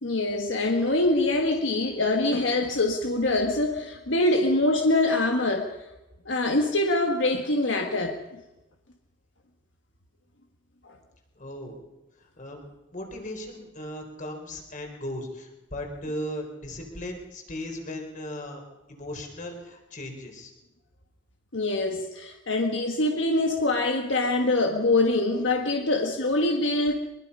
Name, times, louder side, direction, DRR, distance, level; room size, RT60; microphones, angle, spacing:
voice 1, 0.0-5.7 6.2-8.2 10.8-10.9 21.5-26.9, left 2 dB, 70° left, 3 dB, 1.7 m, -24 dB
voice 2, 11.4-11.8 12.4-12.6 12.9-18.6 18.9-20.5, left 1 dB, 40° left, 3 dB, 4.4 m, -37 dB
23.5 x 22.0 x 5.6 m, 1.0 s
head